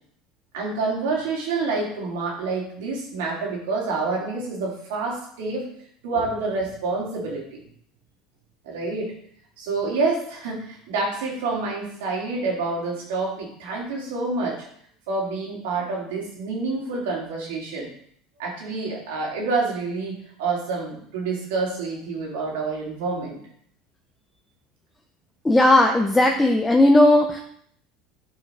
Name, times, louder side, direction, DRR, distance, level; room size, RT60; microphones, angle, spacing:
voice 1, 0.5-5.7 6.0-7.6 8.7-9.1 9.6-14.6 15.1-17.9 18.4-23.4, right 3 dB, 85° right, -2 dB, 3.5 m, -28 dB
voice 2, 25.4-27.4, left 1 dB, 10° left, 2 dB, 0.8 m, -16 dB
8.9 x 5.7 x 4.8 m, 0.65 s
supercardioid pair, 125°, 0 cm